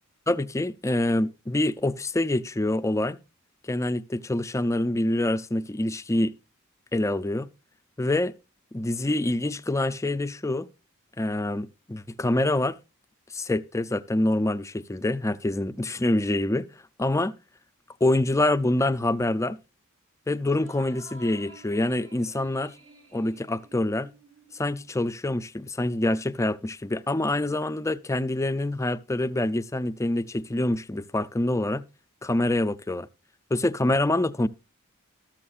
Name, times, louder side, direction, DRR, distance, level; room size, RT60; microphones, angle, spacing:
voice 1, 0.3-3.2 3.6-6.3 6.9-7.5 8.0-8.3 8.7-10.7 11.2-12.7 13.3-16.7 17.0-17.3 18.0-19.6 20.3-22.7 23.1-24.1 24.6-31.9 32.2-33.1 33.5-34.5, left 1 dB, 15° left, 0.5 m, -26 dB
sound 1, 20.4-25.1, right 1 dB, 65° right, 2.5 m, -52 dB
13.5 x 12.5 x 2.5 m
head